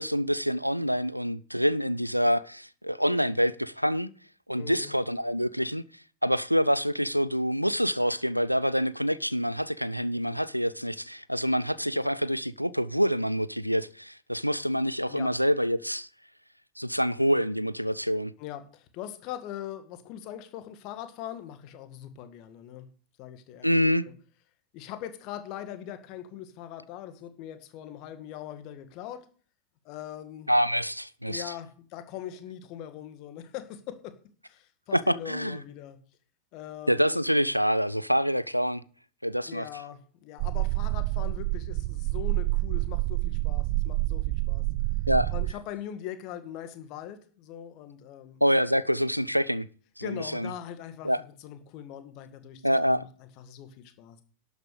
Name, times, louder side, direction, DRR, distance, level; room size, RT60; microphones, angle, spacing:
voice 1, 0.0-4.1 4.5-5.8 6.2-16.1 16.8-18.3 23.6-24.1 30.5-31.5 34.9-35.6 36.9-38.8 39.2-39.7 45.1-45.3 48.4-49.7 50.0-50.5 51.0-51.2 52.6-53.0, equal, 90° right, 0.5 m, -26 dB
voice 2, 4.5-4.9 15.1-15.3 18.4-22.9 23.2-23.8 24.7-29.3 29.8-30.5 31.3-34.1 34.4-36.0 36.5-37.1 39.5-44.7 45.3-48.4 50.0-54.2, left 11 dB, 40° left, 2.0 m, -41 dB
sound 1, 40.4-45.5, right 21 dB, 45° right, 0.6 m, -28 dB
12.0 x 8.7 x 6.6 m
figure-of-eight pair, 90°, 0 cm